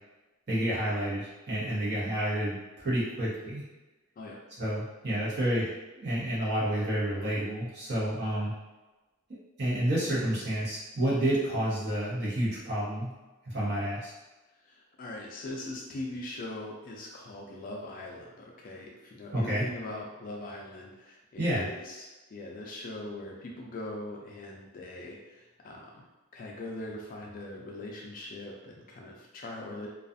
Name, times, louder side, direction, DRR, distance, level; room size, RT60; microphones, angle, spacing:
voice 1, 0.5-3.6 4.6-8.5 9.6-13.1 13.4-14.1 19.3-19.6 21.4-21.7, right 1 dB, 50° right, -8 dB, 1.0 m, -29 dB
voice 2, 14.6-26.1 26.3-29.9, left 1 dB, 40° left, -1 dB, 0.3 m, -41 dB
2.4 x 2.3 x 2.5 m, 1.1 s
head